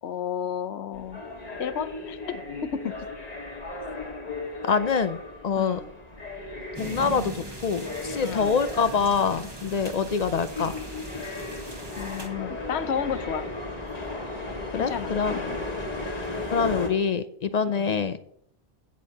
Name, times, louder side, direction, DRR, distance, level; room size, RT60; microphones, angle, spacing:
voice 1, 0.0-1.2 1.6-3.1 5.6-5.9 8.2-8.6 12.0-13.5 14.7-15.6 17.7-18.0, left 8 dB, 85° left, 12 dB, 1.0 m, -32 dB
sound 1, 0.9-16.9, left 2 dB, 40° left, 1.8 m, -36 dB
voice 2, 4.6-5.8 6.8-10.7 14.7-15.4 16.5-18.2, left 5 dB, 55° left, 12 dB, 0.5 m, -25 dB
sound 2, 6.7-12.3, right 2 dB, 25° right, 1.0 m, -41 dB
16.5 x 6.3 x 2.9 m, 0.67 s
omnidirectional pair, 1.1 m